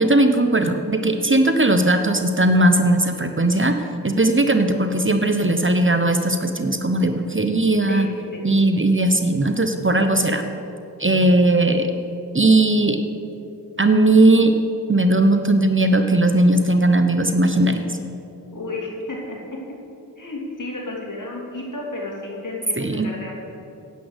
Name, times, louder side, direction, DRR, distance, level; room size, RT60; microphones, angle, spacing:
voice 1, 0.0-3.7 4.0-8.1 8.4-10.4 11.0-11.9 12.3-13.0 13.8-14.5 14.9-17.9 22.8-23.1, right 2 dB, 30° right, 7 dB, 1.0 m, -18 dB
voice 2, 7.9-8.4 18.5-19.4 20.2-23.3, left 2 dB, 55° left, -3 dB, 3.4 m, -32 dB
10.0 x 8.4 x 8.1 m, 2.7 s
cardioid pair, 40°, 38 cm